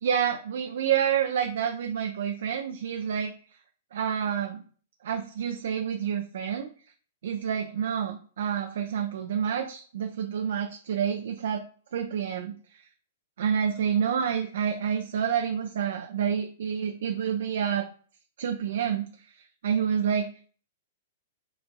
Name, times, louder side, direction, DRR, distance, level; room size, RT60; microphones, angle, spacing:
voice 1, 0.0-3.3 3.9-4.6 5.0-6.7 7.2-11.6 11.9-12.5 13.4-17.8 18.4-19.1 19.6-20.3, right 8 dB, 60° right, 3 dB, 0.4 m, -28 dB
6.0 x 2.5 x 2.2 m, 0.43 s
figure-of-eight pair, 105°, 0 cm